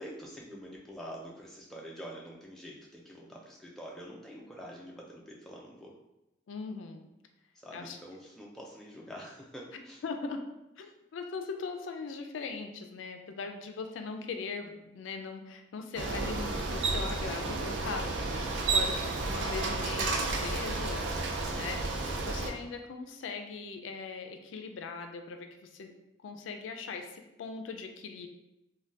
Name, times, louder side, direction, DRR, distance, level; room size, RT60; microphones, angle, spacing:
voice 1, 0.0-5.9 7.6-10.0 21.5-21.8, equal, ahead, -3 dB, 0.3 m, -46 dB
voice 2, 6.5-7.1 7.7-8.0 9.7-10.4 10.8-18.1 18.3-21.1 21.5-25.9 26.2-28.3, left 4 dB, 80° left, 5 dB, 0.3 m, -40 dB
Bicycle, 16.0-22.5, right 3 dB, 70° right, 0.4 m, -31 dB
3.2 x 2.2 x 2.6 m, 0.91 s
head